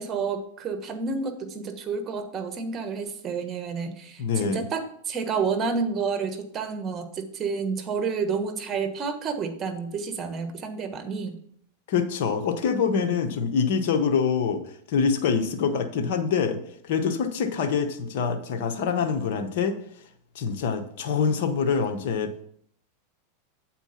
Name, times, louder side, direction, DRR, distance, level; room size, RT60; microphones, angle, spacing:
voice 1, 0.0-11.4, right 5 dB, 30° right, 8 dB, 1.2 m, -30 dB
voice 2, 4.2-4.6 11.9-14.6 14.9-16.6 16.8-19.8 20.3-22.4, left 6 dB, 65° left, 6 dB, 0.9 m, -25 dB
8.2 x 4.3 x 5.7 m, 0.65 s
hypercardioid pair, 120°, 0 cm